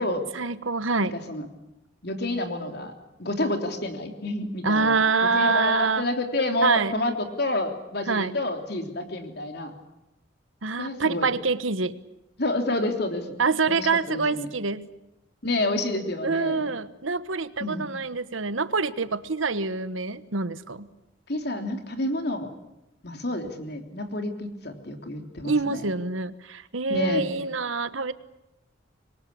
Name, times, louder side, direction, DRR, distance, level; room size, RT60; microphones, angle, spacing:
voice 1, 0.3-1.2 4.6-6.1 6.6-6.9 8.1-8.3 10.6-12.0 13.4-14.8 16.2-20.9 25.4-28.1, right 4 dB, 90° right, 13 dB, 1.3 m, -25 dB
voice 2, 1.0-1.4 2.0-2.9 3.2-9.7 10.8-11.3 12.4-13.3 13.7-14.5 15.4-16.7 17.6-17.8 21.3-22.5 23.0-25.8 26.9-27.2, left 1 dB, 55° left, 5 dB, 3.4 m, -29 dB
26.0 x 22.5 x 8.6 m, 0.90 s
head